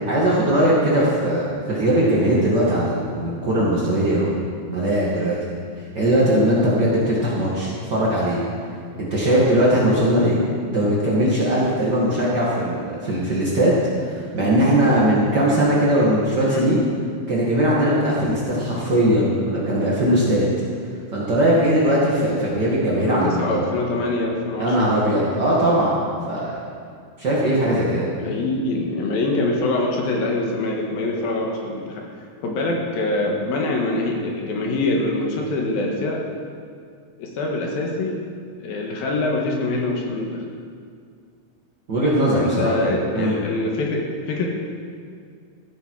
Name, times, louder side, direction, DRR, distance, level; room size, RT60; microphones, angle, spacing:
voice 1, 0.0-4.3 4.7-5.4 5.9-8.4 9.1-10.4 10.7-16.8 17.3-20.5 21.1-23.6 24.6-26.0 26.3-26.6 27.2-28.1 41.9-42.7 43.1-43.3, right 1 dB, 80° right, -6 dB, 0.9 m, -20 dB
voice 2, 23.0-24.9 28.1-32.1 32.4-36.2 37.2-38.2 38.6-40.3 42.3-44.5, left 2 dB, 65° left, 0 dB, 2.7 m, -24 dB
14.5 x 13.5 x 4.8 m, 2.2 s
omnidirectional pair, 5.6 m